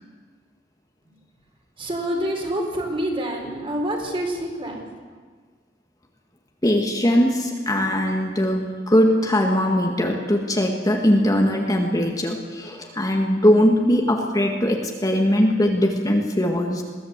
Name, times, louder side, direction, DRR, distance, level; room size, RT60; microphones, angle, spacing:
voice 1, 1.8-4.8, right 1 dB, 30° right, 1 dB, 4.2 m, -27 dB
voice 2, 6.6-16.8, equal, 20° left, 1 dB, 1.8 m, -20 dB
22.0 x 15.5 x 8.2 m, 1.5 s
head